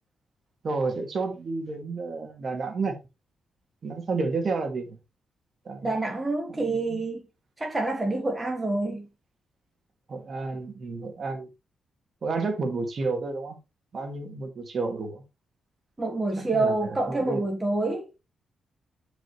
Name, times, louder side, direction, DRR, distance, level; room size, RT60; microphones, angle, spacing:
voice 1, 0.6-2.9 3.8-5.0 5.7-6.0 6.5-7.0 10.1-11.5 12.2-13.6 13.9-15.2 16.4-16.7 17.1-17.4, right 3 dB, 50° right, 2.2 m, -31 dB
voice 2, 5.8-7.2 7.6-9.1 16.0-18.1, right 2 dB, 20° right, 1.4 m, -27 dB
9.1 x 5.1 x 3.3 m
cardioid pair, 100°, 0 cm